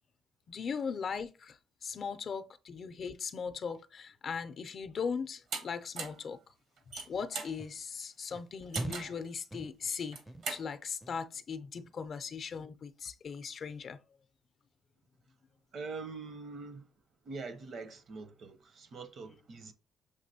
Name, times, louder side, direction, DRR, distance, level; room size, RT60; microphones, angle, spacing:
voice 1, 0.5-6.4 7.1-10.2 10.5-14.0, left 6 dB, 50° left, 0.5 m, -39 dB
sound 1, 5.5-5.6 6.0-6.2 6.8-7.6 8.7-9.2 10.0-10.6, right 5 dB, 75° right, 1.1 m, -38 dB
sound 2, 7.6-7.8 8.3-8.5 8.8-9.2 9.5-9.9 10.3-10.7 11.0-11.4 11.8-12.1 12.5-12.7, right 2 dB, 5° right, 0.4 m, -42 dB
voice 2, 15.7-16.9 17.2-19.7, right 4 dB, 60° right, 0.7 m, -44 dB
6.5 x 3.0 x 2.7 m
cardioid pair, 90°, 0 cm